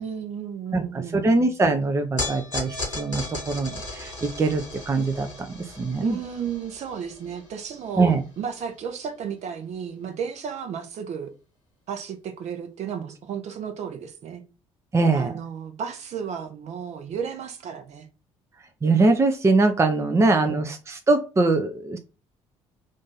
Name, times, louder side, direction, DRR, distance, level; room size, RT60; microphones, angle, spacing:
voice 1, 0.0-1.3 6.0-11.3 11.9-14.4 15.1-18.1 20.1-20.7, right 7 dB, 45° right, 0.8 m, -33 dB
voice 2, 0.7-5.3 5.6-6.2 8.0-8.2 14.9-15.3 18.8-22.0, right 3 dB, 20° right, 0.6 m, -22 dB
sound 1, 2.2-8.6, left 2 dB, 90° left, 1.4 m, -36 dB
3.7 x 2.6 x 3.8 m
figure-of-eight pair, 50°, 16 cm